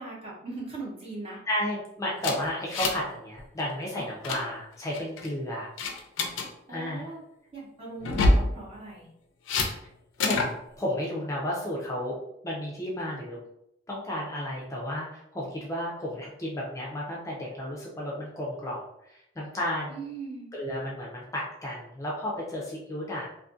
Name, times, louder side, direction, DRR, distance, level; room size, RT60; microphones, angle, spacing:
voice 1, 0.0-1.4 6.7-7.2 7.5-9.1 19.9-20.5, right 3 dB, 30° right, -5 dB, 0.8 m, -39 dB
voice 2, 1.5-5.7 6.7-7.1 10.2-12.2 12.4-13.4 13.9-20.0 20.5-23.3, left 1 dB, 15° left, -4 dB, 0.4 m, -33 dB
sound 1, 2.2-3.1 3.4-3.6 4.0-4.4 4.9-5.3 5.8-6.5 8.0-8.5 9.5-9.7 10.2-10.5, left 2 dB, 90° left, 0.4 m, -25 dB
2.6 x 2.5 x 2.4 m, 0.78 s
head